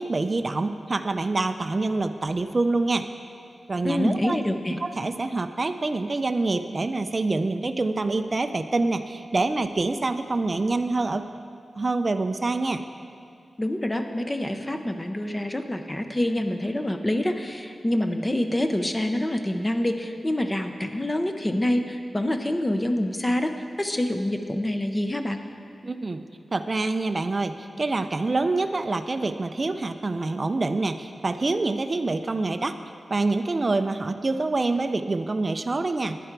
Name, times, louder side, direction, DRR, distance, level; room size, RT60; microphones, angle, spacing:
voice 1, 0.0-3.1 3.7-4.4 4.8-11.3 11.8-12.8 25.8-26.2 26.5-32.8 33.1-36.2, right 3 dB, 35° right, 8 dB, 0.4 m, -26 dB
voice 2, 3.8-4.8 13.6-25.4, left 1 dB, 20° left, 6 dB, 0.6 m, -26 dB
10.0 x 10.0 x 4.6 m, 2.5 s
wide cardioid pair, 110°, 0 cm